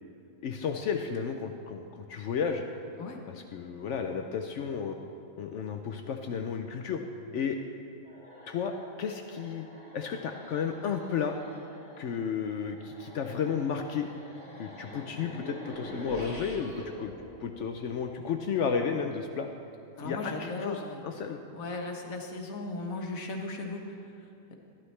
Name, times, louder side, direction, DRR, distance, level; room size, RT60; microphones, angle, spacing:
voice 1, 0.4-2.6 3.3-5.0 5.4-7.0 7.3-7.6 8.5-9.7 9.9-11.4 12.0-14.1 14.6-17.1 17.4-19.5 20.0-21.4, left 6 dB, 65° left, 5 dB, 0.9 m, -33 dB
sound 1, 8.0-18.3, equal, 25° right, 3.4 m, -46 dB
voice 2, 20.0-21.0 21.5-24.5, left 2 dB, 85° left, 2 dB, 1.6 m, -37 dB
13.0 x 12.5 x 3.2 m, 2.7 s
omnidirectional pair, 1.4 m